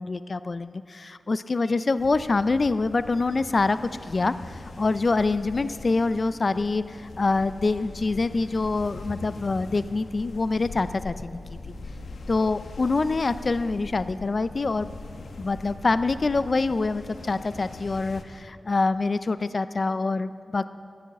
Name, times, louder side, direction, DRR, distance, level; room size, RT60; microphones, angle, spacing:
voice 1, 0.0-11.4 12.3-14.9 15.4-20.7, left 3 dB, 45° left, 14 dB, 0.3 m, -25 dB
sound 1, 2.0-18.2, left 3 dB, 85° left, 1.0 m, -41 dB
14.0 x 10.0 x 8.2 m, 2.4 s
wide cardioid pair, 125°, 0 cm